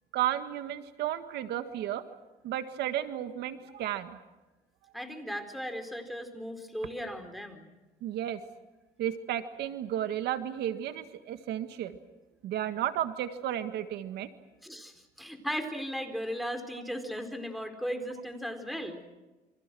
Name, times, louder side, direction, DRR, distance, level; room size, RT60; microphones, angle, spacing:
voice 1, 0.1-2.0 2.4-4.2 8.0-8.4 9.0-12.0 12.4-14.3 16.7-16.8, right 11 dB, 75° right, 9 dB, 1.8 m, -33 dB
voice 2, 4.9-7.7 14.6-19.0, equal, ahead, 7 dB, 4.4 m, -37 dB
29.0 x 26.0 x 6.2 m, 1.1 s
cardioid pair, 110°, 17 cm